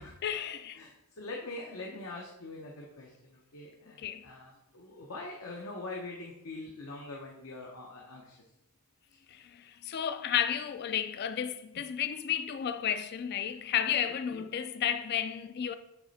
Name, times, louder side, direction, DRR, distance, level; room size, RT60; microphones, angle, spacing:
voice 1, 0.0-0.8 4.0-4.3 9.3-15.7, left 9 dB, 50° left, 0.3 m, -32 dB
voice 2, 0.7-8.4 11.7-11.8 13.4-13.5 14.3-14.5, left 2 dB, 70° left, 0.8 m, -43 dB
8.0 x 3.3 x 4.0 m
head